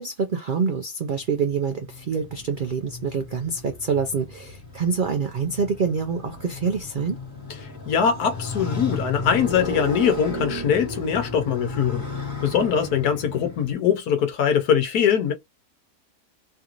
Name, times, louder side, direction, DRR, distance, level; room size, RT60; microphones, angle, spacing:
voice 1, 0.0-7.2, right 5 dB, 80° right, 0.4 m, -26 dB
Motorcycle, 1.2-13.7, left 2 dB, 35° left, 1.3 m, -34 dB
voice 2, 7.9-12.0 12.4-15.3, left 8 dB, 75° left, 1.3 m, -22 dB
3.3 x 2.5 x 2.9 m
omnidirectional pair, 1.6 m